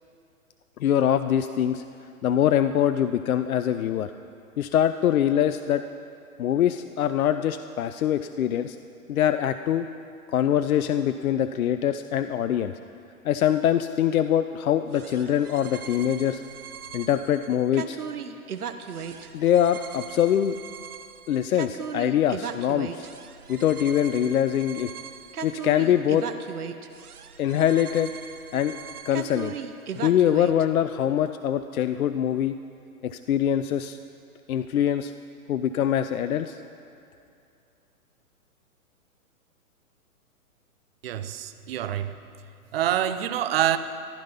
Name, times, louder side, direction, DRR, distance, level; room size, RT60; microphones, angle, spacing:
voice 1, 0.8-1.8 2.2-4.1 4.6-5.8 6.4-8.8 9.1-9.9 10.3-12.7 13.2-16.4 16.9-18.0 19.3-20.6 21.3-23.1 23.5-24.9 25.4-26.3 27.4-28.1 28.5-28.8 29.1-29.5 30.0-32.5 33.0-34.0 34.5-35.1 35.5-36.6, left 10 dB, 70° left, 10 dB, 0.6 m, -23 dB
sound 1, 14.9-30.6, right 7 dB, 85° right, 1.0 m, -38 dB
voice 2, 41.0-42.1 42.7-43.8, right 11 dB, 45° right, 12 dB, 0.7 m, -26 dB
15.0 x 11.5 x 5.5 m, 2.6 s
hypercardioid pair, 140°, 44 cm